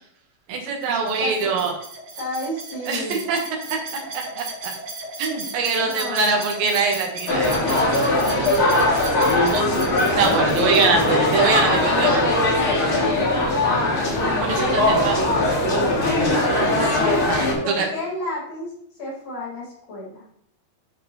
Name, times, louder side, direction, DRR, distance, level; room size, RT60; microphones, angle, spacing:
voice 1, 0.5-1.7 2.9-3.4 3.7-3.8 4.1-4.7 5.2-7.5 9.5-9.7 10.2-12.2 14.4-15.3 16.8-17.0 17.3-17.9, right 4 dB, 75° right, 2 dB, 3.5 m, -23 dB
sound 1, 0.8-11.9, right 3 dB, 50° right, 2.5 m, -36 dB
voice 2, 1.2-1.5 2.2-3.2 5.8-6.4 7.9-8.7 10.3-11.1 11.6-14.1 17.6-18.7 19.0-20.2, left 1 dB, 55° left, -4 dB, 4.9 m, -32 dB
sound 2, 7.3-17.5, left 2 dB, 40° left, 3.1 m, -20 dB
13.5 x 4.8 x 4.1 m, 0.68 s
omnidirectional pair, 4.3 m